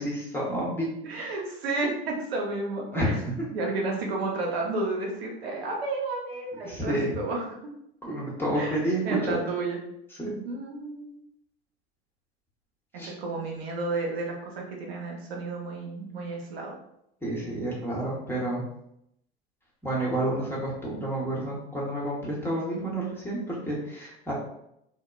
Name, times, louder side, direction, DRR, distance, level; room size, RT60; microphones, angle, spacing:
voice 1, 0.0-1.3 2.9-3.3 6.6-7.1 8.0-9.5 10.2-10.4 13.0-13.1 17.2-18.6 19.8-24.3, right 1 dB, 5° left, -5 dB, 0.9 m, -30 dB
voice 2, 1.0-3.1 3.5-7.4 8.5-9.8 10.4-11.2 13.2-16.7, right 3 dB, 80° right, 0 dB, 0.7 m, -31 dB
2.8 x 2.1 x 2.3 m, 0.78 s
hypercardioid pair, 85°, 30 cm